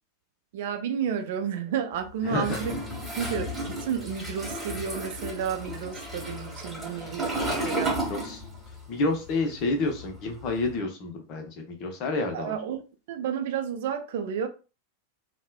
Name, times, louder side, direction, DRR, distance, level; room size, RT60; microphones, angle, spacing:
voice 1, 0.5-2.7 3.2-8.0 12.3-12.8 13.1-14.5, right 8 dB, 55° right, 0.4 m, -31 dB
voice 2, 2.2-2.6 7.0-7.1 8.1-8.4 8.9-12.5, left 3 dB, 40° left, 0.7 m, -29 dB
Toilet flush, 2.4-8.8 9.1-10.7, right 1 dB, 10° right, 1.3 m, -33 dB
3.0 x 2.1 x 2.2 m
figure-of-eight pair, 90°, 0 cm